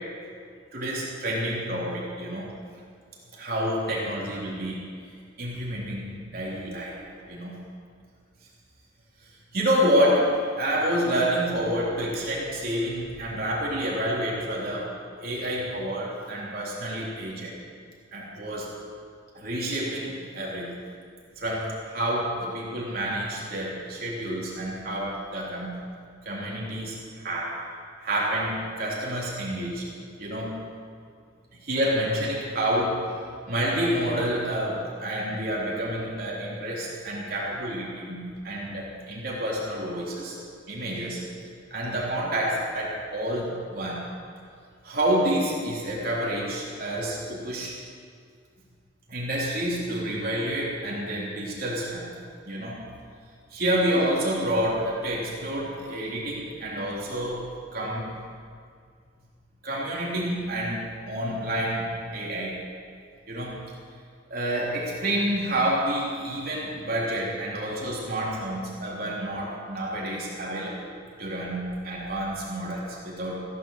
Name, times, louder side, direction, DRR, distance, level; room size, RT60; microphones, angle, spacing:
voice 1, 0.7-2.5 3.3-4.8 5.4-7.0 7.3-7.6 9.5-14.9 15.2-17.5 18.1-18.7 19.3-20.8 21.4-25.8 26.3-27.6 28.0-29.8 30.2-30.6 31.6-33.0 33.5-40.4 40.7-41.2 41.7-44.0 44.8-47.7 49.1-52.1 52.5-52.9 53.5-57.4 57.7-58.1 59.6-62.5 63.3-63.5 64.3-70.9 71.2-73.4, equal, 50° right, -5 dB, 3.4 m, -28 dB
15.5 x 11.0 x 6.5 m, 2.1 s
head